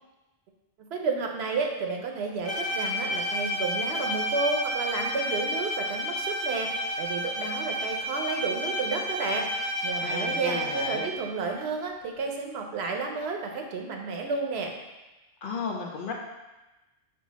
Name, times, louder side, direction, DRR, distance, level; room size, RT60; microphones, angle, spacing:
voice 1, 0.9-14.7, right 4 dB, 75° right, 2 dB, 0.9 m, -31 dB
Bowed string instrument, 2.4-11.2, equal, 15° left, 0.7 m, -31 dB
voice 2, 10.0-11.0 15.4-16.1, left 4 dB, 60° left, 0 dB, 0.6 m, -34 dB
5.5 x 2.4 x 4.1 m, 1.1 s
omnidirectional pair, 1.1 m